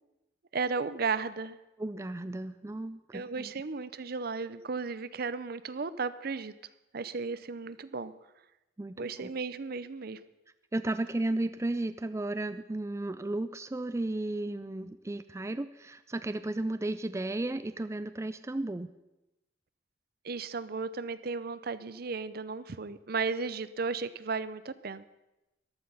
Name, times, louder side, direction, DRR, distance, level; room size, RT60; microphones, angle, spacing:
voice 1, 0.5-1.6 3.1-6.5 6.9-8.1 9.0-10.2 20.2-25.0, right 4 dB, 55° right, 15 dB, 0.6 m, -34 dB
voice 2, 1.8-3.5 8.8-9.3 10.7-18.9, right 2 dB, 15° right, 12 dB, 0.4 m, -34 dB
14.5 x 11.5 x 5.6 m, 0.97 s
head